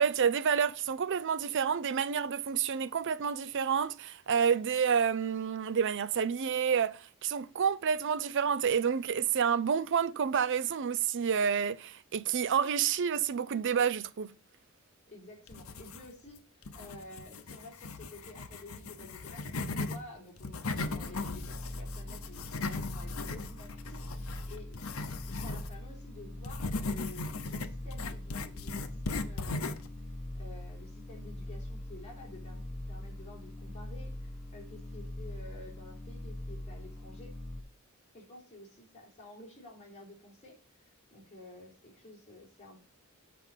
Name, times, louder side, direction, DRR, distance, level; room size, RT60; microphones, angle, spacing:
voice 1, 0.0-14.3, right 7 dB, 60° right, 0.5 m, -29 dB
voice 2, 15.1-24.8 25.3-29.8 30.3-37.4 38.1-42.9, left 1 dB, 30° left, 3.9 m, -51 dB
sound 1, 15.5-16.3 16.6-20.0 20.4-25.7 26.4-29.9, left 3 dB, 75° left, 0.9 m, -38 dB
sound 2, 20.8-37.6, left 1 dB, ahead, 0.9 m, -42 dB
8.2 x 5.0 x 5.5 m
head